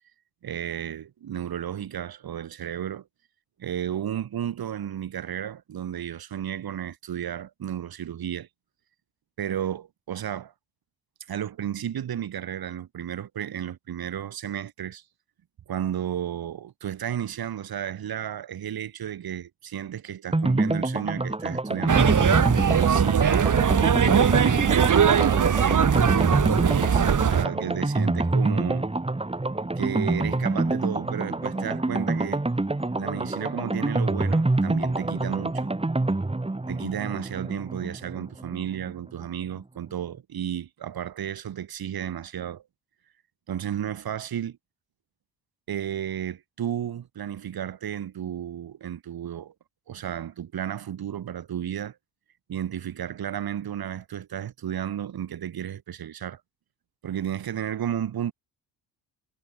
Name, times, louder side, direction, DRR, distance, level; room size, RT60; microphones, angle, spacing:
voice 1, 0.4-3.1 3.6-8.5 9.4-10.5 11.3-15.0 15.7-22.2 22.7-28.9 29.7-32.4 32.9-35.7 36.7-42.6 43.5-44.6 45.7-49.5 49.9-52.0 52.5-56.4 57.0-58.3, right 10 dB, 65° right, 6.5 m, -33 dB
sound 1, 20.3-38.9 39.2-39.3 39.6-39.7, right 2 dB, 15° right, 4.1 m, -27 dB
sound 2, 21.9-27.4, right 7 dB, 50° right, 4.6 m, -20 dB
cardioid pair, 80°, 39 cm